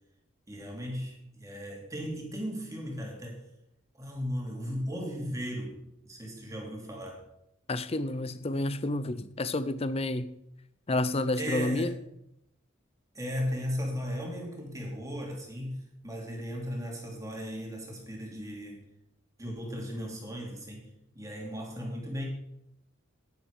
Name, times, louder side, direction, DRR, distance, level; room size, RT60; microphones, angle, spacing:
voice 1, 0.5-3.4 3.9-5.8 6.0-7.2 11.4-11.9 13.1-18.8 19.4-20.9 21.1-22.3, equal, 15° right, -1 dB, 2.7 m, -36 dB
voice 2, 7.7-10.4 10.9-11.9, left 2 dB, 30° left, 14 dB, 0.6 m, -30 dB
11.0 x 10.5 x 4.8 m, 0.79 s
head